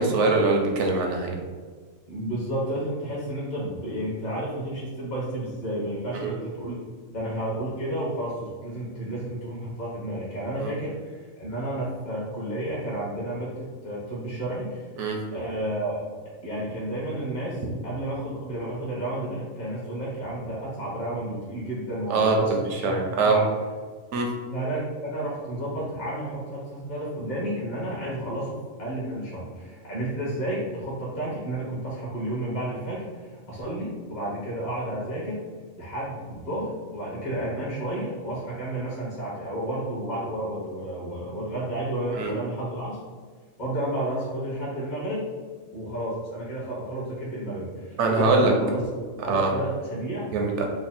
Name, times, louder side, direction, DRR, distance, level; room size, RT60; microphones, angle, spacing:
voice 1, 0.0-1.4 6.1-6.3 10.6-10.7 15.0-15.2 22.1-23.4 24.1-24.3 42.1-42.3 48.0-48.5 49.3-49.5 50.3-50.6, right 3 dB, 65° right, 1 dB, 0.9 m, -23 dB
voice 2, 2.1-6.8 7.1-14.9 15.3-16.0 16.4-23.5 24.5-35.4 35.8-43.0 43.6-45.3 45.7-48.8 49.2-50.3 50.6-50.7, right 1 dB, 35° left, -8 dB, 1.0 m, -31 dB
3.4 x 2.1 x 4.1 m, 1.5 s
omnidirectional pair, 1.4 m